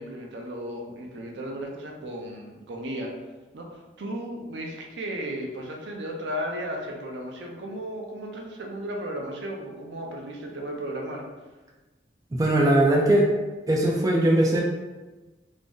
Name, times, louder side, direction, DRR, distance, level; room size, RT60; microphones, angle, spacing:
voice 1, 0.0-3.1 3.5-3.7 4.0-11.2, equal, 80° right, 0 dB, 0.5 m, -35 dB
voice 2, 12.3-13.3 13.7-14.6, right 1 dB, 20° right, -1 dB, 0.3 m, -20 dB
2.5 x 2.0 x 3.6 m, 1.2 s
head